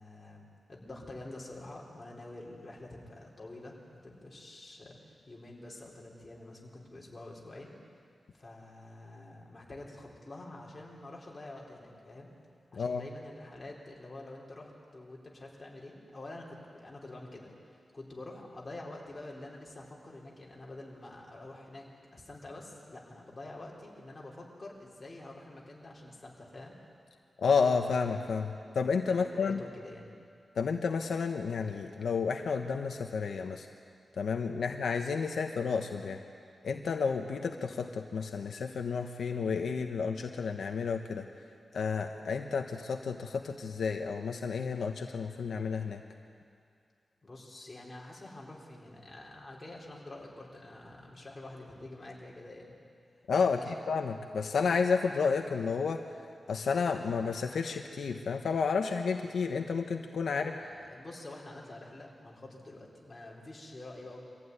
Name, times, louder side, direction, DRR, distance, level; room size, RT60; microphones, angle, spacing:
voice 1, 0.0-7.7 8.3-12.3 12.7-26.8 29.1-30.1 47.2-52.8 53.5-53.8 60.2-64.2, left 2 dB, 25° left, -3 dB, 4.3 m, -47 dB
voice 2, 27.4-29.6 30.6-33.7 34.2-36.2 36.6-41.2 41.7-46.0 53.3-56.0 56.5-60.5, left 5 dB, 80° left, 4 dB, 1.1 m, -31 dB
24.0 x 14.5 x 9.7 m, 2.3 s
wide cardioid pair, 115°, 0 cm